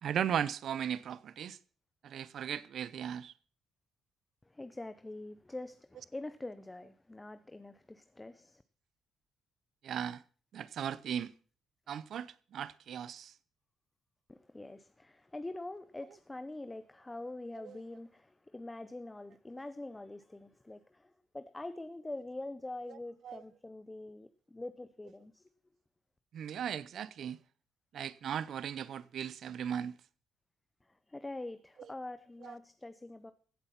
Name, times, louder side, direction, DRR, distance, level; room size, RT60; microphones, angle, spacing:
voice 1, 0.0-1.6 2.0-3.3 9.8-10.2 10.5-11.3 11.9-13.3 17.6-17.8 22.9-23.0 23.2-23.4 26.3-27.4 27.9-30.0 32.4-32.5, right 9 dB, 65° right, 0.7 m, -37 dB
voice 2, 4.5-8.6 14.3-25.5 30.8-33.3, left 2 dB, 15° left, 0.7 m, -45 dB
16.0 x 7.9 x 5.8 m
cardioid pair, 90°, 0 cm